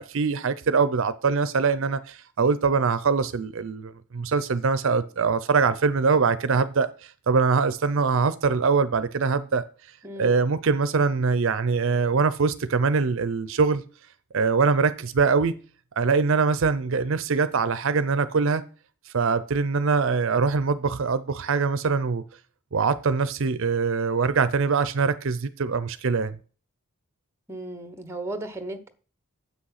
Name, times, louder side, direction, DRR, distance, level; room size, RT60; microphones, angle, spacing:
voice 1, 0.0-9.6 10.2-13.8 14.3-15.6 16.0-18.6 19.1-22.2 22.7-26.4, right 5 dB, 60° right, 0.5 m, -23 dB
voice 2, 10.0-10.4 27.5-28.9, right 2 dB, 10° right, 1.0 m, -35 dB
8.1 x 6.4 x 5.7 m
head